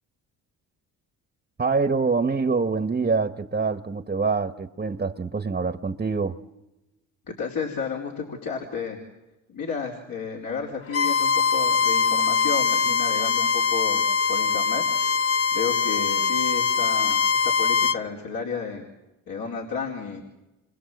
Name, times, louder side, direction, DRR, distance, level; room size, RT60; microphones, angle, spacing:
voice 1, 1.6-6.4, right 4 dB, 25° right, 1.4 m, -25 dB
voice 2, 7.3-9.0 9.5-14.8 15.5-18.8 19.3-20.2, left 5 dB, 65° left, 4.6 m, -32 dB
Bowed string instrument, 10.9-18.0, left 5 dB, 40° left, 0.9 m, -22 dB
28.5 x 24.5 x 8.0 m
supercardioid pair, 70°, 37 cm